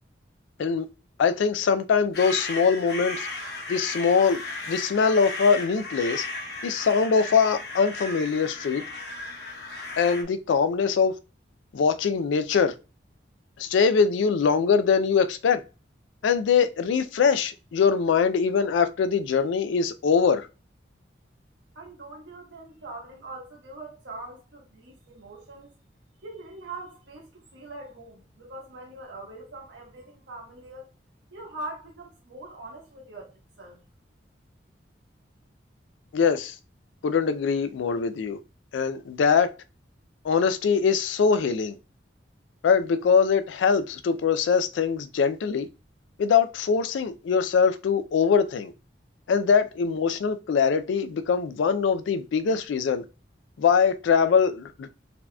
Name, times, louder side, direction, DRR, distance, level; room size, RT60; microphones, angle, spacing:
voice 1, 1.2-3.3 3.7-6.2 6.6-8.8 10.0-11.1 11.7-12.7 13.6-15.6 16.2-20.5 36.1-36.6 37.0-38.4 38.7-39.5 40.2-41.8 42.6-45.7 46.2-48.7 49.3-53.0 53.6-54.9, left 6 dB, 85° left, 0.3 m, -22 dB
sound 1, 2.1-10.2, left 2 dB, 60° left, 0.9 m, -35 dB
voice 2, 21.7-25.7 26.2-30.9 31.3-33.3 33.6-33.8, right 2 dB, 80° right, 1.0 m, -42 dB
4.1 x 2.8 x 2.2 m
head